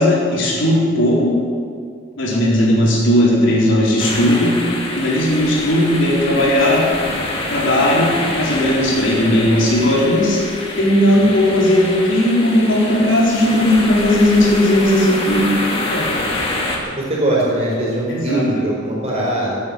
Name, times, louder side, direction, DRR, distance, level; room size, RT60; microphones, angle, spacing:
voice 1, 0.0-1.4 2.2-4.5 4.9-6.8 7.5-10.4 10.8-16.2 18.1-18.5, left 1 dB, 65° left, -4 dB, 4.2 m, -16 dB
voice 2, 2.4-2.9 11.5-11.6 16.8-19.6, right 1 dB, 30° right, -4 dB, 4.9 m, -21 dB
sound 1, 4.0-16.8, left 2 dB, 25° left, 2.1 m, -26 dB
17.0 x 9.4 x 7.8 m, 2.3 s
head